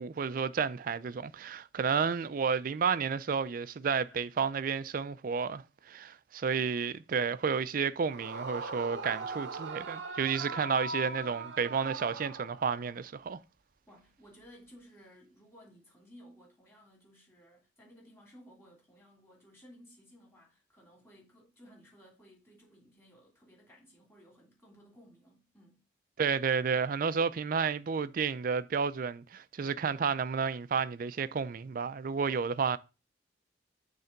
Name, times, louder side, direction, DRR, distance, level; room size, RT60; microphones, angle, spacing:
voice 1, 0.0-13.4 26.2-32.8, right 6 dB, 50° right, 0.4 m, -31 dB
Yell / Screaming, 8.1-13.0, right 3 dB, 85° right, 0.8 m, -40 dB
voice 2, 13.9-25.8, equal, 15° left, 2.6 m, -58 dB
6.5 x 3.4 x 5.7 m
head